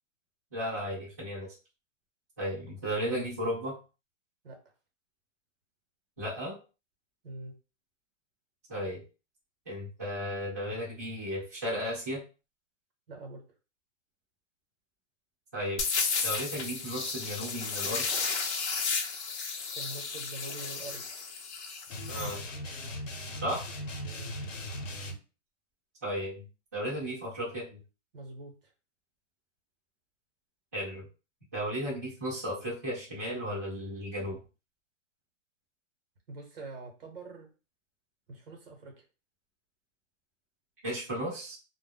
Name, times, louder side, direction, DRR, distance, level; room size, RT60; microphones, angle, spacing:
voice 1, 0.5-1.5 2.4-3.7 6.2-6.6 8.7-9.0 9.7-12.2 15.5-15.8 16.2-18.2 22.1-22.4 23.4-23.6 26.0-26.5 26.7-27.8 30.7-31.1 31.5-34.4 40.8-41.6, equal, 15° right, -10 dB, 0.4 m, -34 dB
voice 2, 13.1-13.4 19.7-21.0 24.0-24.3 28.1-28.7 36.3-37.5 38.3-39.1, right 2 dB, 50° right, 2 dB, 1.0 m, -44 dB
sound 1, 15.8-22.4, left 5 dB, 60° left, 0.7 m, -33 dB
sound 2, 21.9-25.1, left 1 dB, 80° left, 1.0 m, -38 dB
2.2 x 2.1 x 3.5 m, 0.33 s
hypercardioid pair, 170°, 38 cm